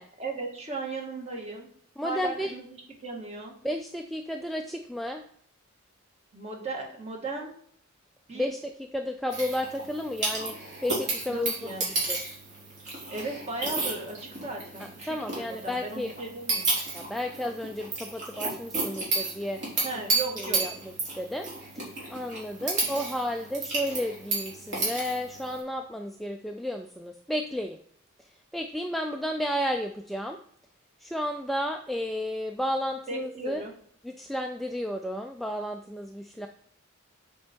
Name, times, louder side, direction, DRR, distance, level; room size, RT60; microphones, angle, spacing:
voice 1, 0.2-1.7 2.0-3.6 6.3-7.5 8.3-8.5 11.3-11.9 13.1-16.7 19.8-20.6 33.1-33.7, right 3 dB, 30° right, 0 dB, 1.7 m, -36 dB
voice 2, 2.0-2.5 3.6-5.2 8.3-10.5 10.8-11.5 11.8-12.2 14.8-16.1 16.9-19.6 20.4-20.7 21.2-21.5 21.7-21.8 22.1-27.8 28.2-28.3 28.5-30.4 31.0-33.6 34.0-36.5, equal, ahead, 3 dB, 0.3 m, -32 dB
sound 1, 9.3-25.6, right 3 dB, 55° right, 3.2 m, -32 dB
8.2 x 4.5 x 4.4 m, 0.62 s
head